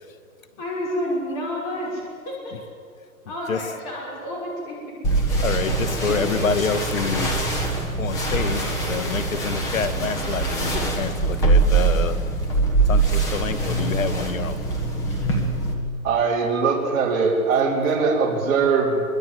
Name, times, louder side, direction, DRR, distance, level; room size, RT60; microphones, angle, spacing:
voice 1, 0.6-2.6 3.3-4.8, equal, 25° left, -3 dB, 5.9 m, -29 dB
sound 1, 5.0-15.7, right 3 dB, 5° left, 1.3 m, -23 dB
voice 2, 5.4-7.5 8.0-12.2 12.9-14.6, left 5 dB, 60° left, 11 dB, 2.1 m, -27 dB
voice 3, 16.0-19.0, right 5 dB, 20° right, -5 dB, 4.5 m, -21 dB
25.5 x 23.5 x 7.9 m, 2.2 s
hypercardioid pair, 175°, 45 cm